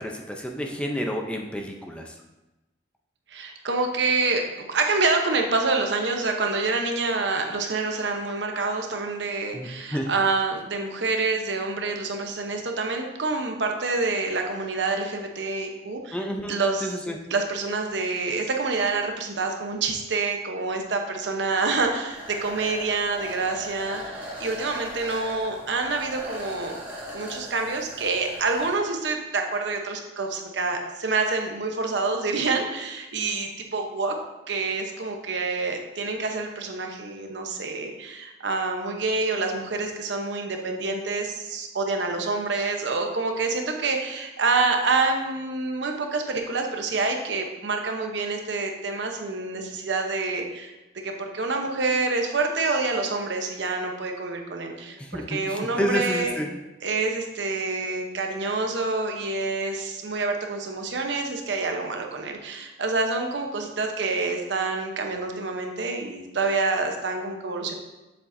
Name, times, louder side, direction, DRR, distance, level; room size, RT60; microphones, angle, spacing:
voice 1, 0.0-2.1 9.5-10.1 16.1-17.2 55.0-56.5, equal, 5° left, 1 dB, 0.5 m, -30 dB
voice 2, 3.3-17.0 17.3-26.8 27.1-34.1 34.5-50.7 51.0-56.4 56.8-67.7, right 3 dB, 70° right, 3 dB, 0.9 m, -27 dB
sound 1, 22.1-28.8, equal, 10° right, 1.6 m, -39 dB
7.3 x 7.0 x 2.6 m, 1.1 s
head